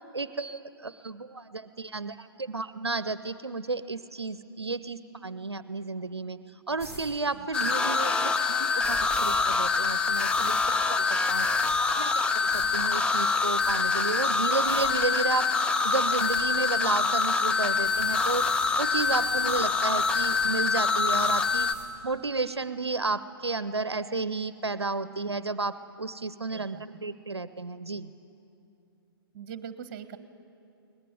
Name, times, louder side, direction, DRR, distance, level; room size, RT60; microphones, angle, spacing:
voice 1, 0.1-6.4 6.7-11.5 11.8-15.5 15.8-18.5 18.8-21.7 22.0-28.1, right 3 dB, 85° right, 15 dB, 0.7 m, -32 dB
sound 1, 6.8-7.0 8.8-9.4 10.1-10.7 11.2-11.8 12.5-12.7 13.3-13.7 14.6-14.9 16.2-16.4 17.8-18.7 19.0-19.6 20.0-20.5 21.1-21.9, equal, 25° left, 7.6 m, -45 dB
sound 2, 7.5-21.8, left 4 dB, 10° left, 0.6 m, -25 dB
voice 2, 26.5-26.8 29.3-30.2, right 8 dB, 35° right, 12 dB, 1.3 m, -41 dB
22.0 x 19.5 x 9.2 m, 2.7 s
figure-of-eight pair, 120°, 13 cm